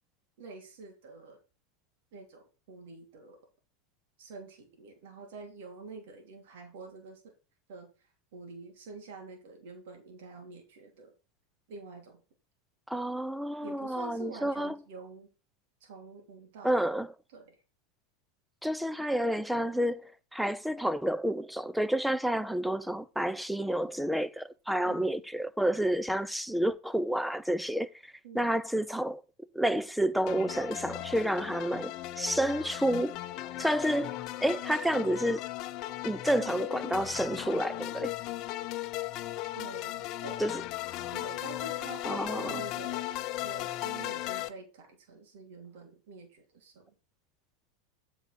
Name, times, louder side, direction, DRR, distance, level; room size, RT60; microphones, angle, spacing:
voice 1, 0.4-1.4 2.1-3.4 4.2-7.3 7.7-11.1 11.7-12.2 13.6-15.3 15.8-17.0 17.3-17.6 24.8-25.1 28.2-28.4 39.5-40.6 41.1-43.1 43.4-46.9, right 3 dB, 70° right, 3.1 m, -47 dB
voice 2, 12.9-14.7 16.6-17.1 18.6-29.2 29.5-33.2 33.6-34.1 34.4-35.4 36.0-38.1 40.4-40.5 42.1-42.5, right 1 dB, ahead, 0.7 m, -30 dB
sound 1, 30.3-44.5, left 16 dB, 50° left, 0.8 m, -37 dB
8.0 x 5.2 x 6.0 m
hypercardioid pair, 110°, 0 cm